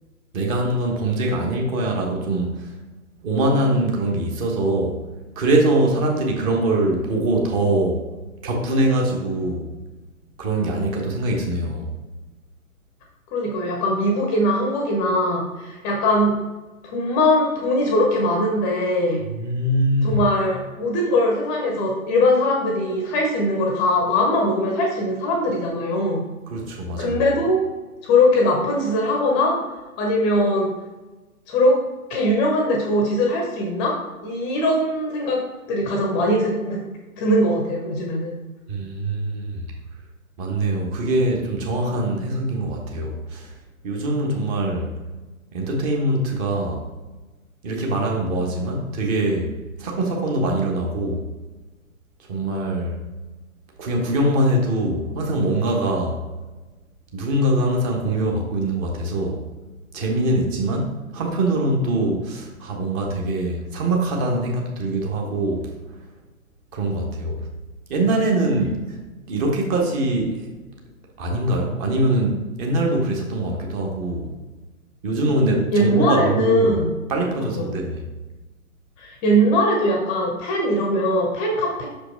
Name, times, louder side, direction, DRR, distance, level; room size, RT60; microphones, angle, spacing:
voice 1, 0.3-2.7 3.2-5.0 5.3-8.0 8.4-9.7 10.4-11.8 19.3-20.2 26.5-27.2 38.7-39.7 40.4-43.5 43.8-44.9 45.5-46.9 47.6-49.5 49.8-51.2 52.3-53.0 53.8-56.2 57.1-59.4 59.9-65.7 66.7-67.5 67.9-69.0 69.3-70.5 71.2-74.3 75.0-76.8 77.1-78.0, right 1 dB, 25° right, 0 dB, 1.3 m, -23 dB
voice 2, 13.3-16.3 16.8-19.2 20.0-26.2 27.0-27.6 28.0-29.6 30.0-30.7 31.5-31.8 32.1-34.0 34.2-35.4 35.7-36.8 37.2-38.4 75.7-76.9 77.6-77.8 79.0-81.9, left 1 dB, 20° left, 0 dB, 0.8 m, -21 dB
6.1 x 5.1 x 4.5 m, 1.2 s
figure-of-eight pair, 120°, 43 cm